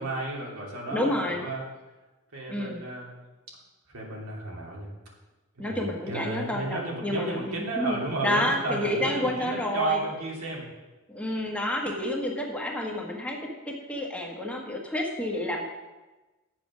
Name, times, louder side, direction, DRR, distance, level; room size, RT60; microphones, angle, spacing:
voice 1, 0.0-1.6 2.3-3.1 3.9-4.9 5.6-10.7, right 2 dB, 80° right, -3 dB, 2.9 m, -33 dB
voice 2, 0.9-1.5 2.5-2.8 5.6-8.0 8.2-10.0 11.1-13.4 13.7-15.6, left 1 dB, 5° left, -1 dB, 1.4 m, -29 dB
9.4 x 7.5 x 6.2 m, 1.2 s
head